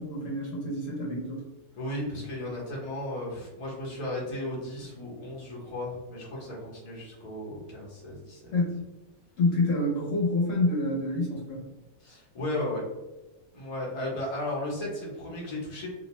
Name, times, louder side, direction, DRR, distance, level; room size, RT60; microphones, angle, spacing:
voice 1, 0.0-1.4 8.5-8.8 9.4-11.7, left 2 dB, 65° left, -3 dB, 1.0 m, -27 dB
voice 2, 1.8-8.6 12.0-12.8 13.5-15.9, left 1 dB, 35° left, -5 dB, 0.7 m, -35 dB
2.6 x 2.1 x 2.9 m, 1.0 s
omnidirectional pair, 1.5 m